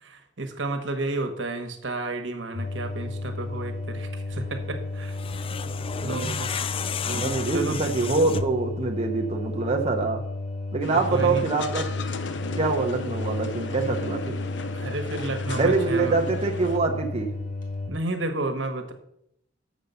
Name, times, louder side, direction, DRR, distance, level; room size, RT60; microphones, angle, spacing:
voice 1, 0.0-5.2 5.6-6.6 7.1-7.8 10.8-11.4 14.7-16.2 17.9-18.9, right 2 dB, 80° right, 7 dB, 1.2 m, -32 dB
sound 1, 2.5-17.9, left 2 dB, 45° left, 2.1 m, -33 dB
sound 2, 5.0-8.7, left 6 dB, 30° left, 0.3 m, -33 dB
voice 2, 6.0-6.4 7.1-10.2 10.7-11.9 12.6-14.4 15.5-17.3, right 3 dB, 35° right, 3 dB, 0.7 m, -25 dB
sound 3, 10.8-16.8, left 3 dB, 70° left, 0.6 m, -34 dB
6.8 x 5.3 x 6.8 m, 0.76 s
head